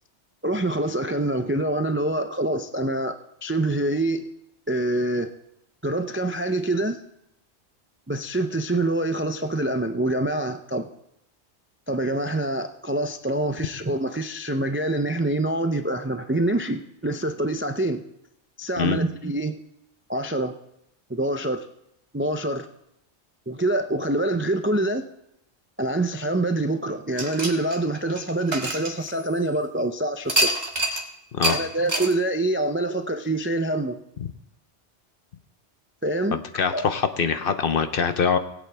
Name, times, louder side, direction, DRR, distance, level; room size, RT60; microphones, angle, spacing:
voice 1, 0.4-3.1 3.4-4.3 4.7-5.3 5.8-7.0 8.1-10.9 11.9-18.0 18.6-19.6 20.1-20.5 21.1-21.7 22.1-22.7 23.5-25.0 25.8-30.5 31.4-34.0 36.0-36.4 36.7-36.9, right 1 dB, 20° right, 7 dB, 0.3 m, -25 dB
sound 1, 27.2-29.6 30.3-31.0 31.4-31.6 31.9-32.1, right 1 dB, 40° right, 1.8 m, -26 dB
voice 2, 36.3-38.4, left 6 dB, 55° left, 10 dB, 0.9 m, -24 dB
20.5 x 8.3 x 3.4 m, 0.80 s
omnidirectional pair, 1.2 m